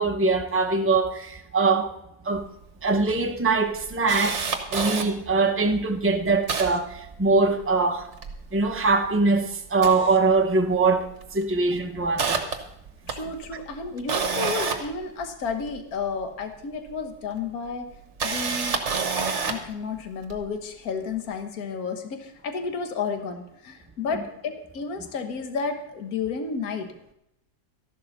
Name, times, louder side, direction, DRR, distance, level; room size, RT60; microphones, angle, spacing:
voice 1, 0.0-1.9 2.2-2.5 2.8-8.1 8.5-12.5, right 3 dB, 20° right, 0.3 m, -23 dB
Camera, 2.5-2.6 2.8-2.9 3.4-5.1 5.7-5.8 6.0-7.7 8.0-9.2 9.7-10.8 11.1-11.4 11.8-15.8 16.9-17.0 17.9-19.7 20.3-20.4, right 5 dB, 45° right, 1.3 m, -29 dB
voice 2, 13.1-17.9 18.2-18.8 19.4-26.9, left 5 dB, 55° left, 1.6 m, -32 dB
13.5 x 11.5 x 4.0 m
omnidirectional pair, 1.9 m